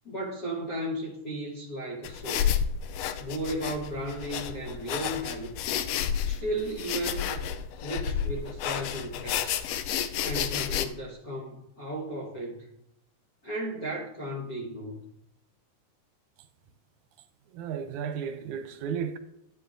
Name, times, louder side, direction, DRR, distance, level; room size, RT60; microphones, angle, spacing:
voice 1, 0.0-2.5 3.2-5.5 6.2-7.4 7.8-9.6 10.2-12.7 13.4-15.0, right 1 dB, 50° left, 1.1 m, -35 dB
sound 1, 2.0-10.9, left 9 dB, 90° left, 1.4 m, -31 dB
voice 2, 17.5-19.2, right 7 dB, 85° right, 2.1 m, -34 dB
11.0 x 10.5 x 2.6 m
omnidirectional pair, 3.4 m